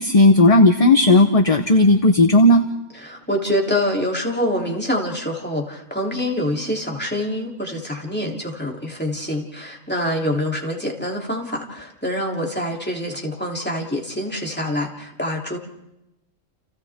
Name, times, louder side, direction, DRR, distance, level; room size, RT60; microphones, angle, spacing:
voice 1, 0.0-2.6, left 2 dB, 30° left, 7 dB, 0.9 m, -14 dB
voice 2, 3.0-15.6, left 1 dB, 10° left, -1 dB, 3.1 m, -25 dB
30.0 x 29.5 x 3.6 m, 0.88 s
omnidirectional pair, 1.3 m